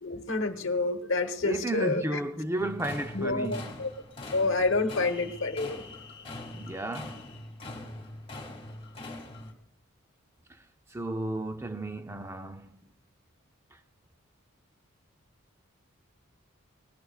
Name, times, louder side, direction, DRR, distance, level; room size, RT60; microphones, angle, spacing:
voice 1, 0.0-2.2 3.1-3.9 4.3-5.8, left 3 dB, 60° left, 1.2 m, -28 dB
voice 2, 1.4-3.8 6.5-7.2 10.9-12.8, right 1 dB, 10° right, 0.5 m, -33 dB
sound 1, 2.6-9.5, left 2 dB, 25° left, 2.0 m, -43 dB
20.0 x 18.0 x 2.4 m
head